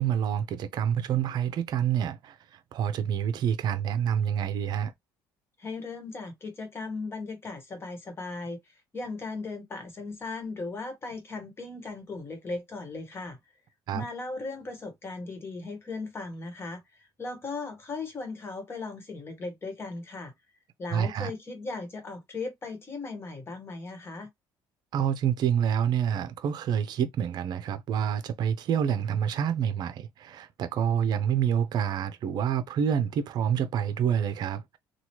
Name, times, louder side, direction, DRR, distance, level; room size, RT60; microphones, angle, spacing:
voice 1, 0.0-4.9 13.9-14.1 20.9-21.3 24.9-34.8, right 8 dB, 55° right, 0.6 m, -27 dB
voice 2, 5.6-13.4 13.9-20.3 20.8-24.3, left 3 dB, 30° left, 1.3 m, -37 dB
3.0 x 2.3 x 2.9 m
cardioid pair, 110°, 8 cm